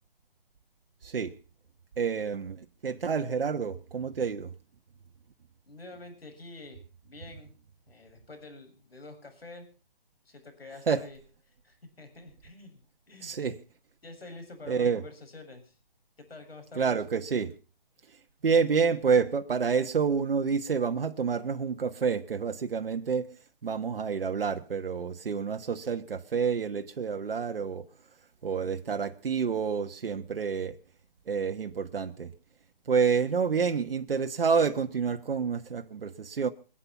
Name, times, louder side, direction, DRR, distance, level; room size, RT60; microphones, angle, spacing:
voice 1, 1.0-1.3 2.0-4.5 10.9-11.0 13.2-13.6 14.7-15.0 16.7-17.5 18.1-27.9 28.4-30.8 31.3-32.3 32.8-36.5, right 6 dB, 75° right, 1.4 m, -28 dB
voice 2, 5.7-7.5 7.9-9.7 10.3-11.2 11.6-13.4 14.0-15.8 16.3-17.0, left 3 dB, 90° left, 7.1 m, -47 dB
25.0 x 8.9 x 5.8 m
hypercardioid pair, 160°, 29 cm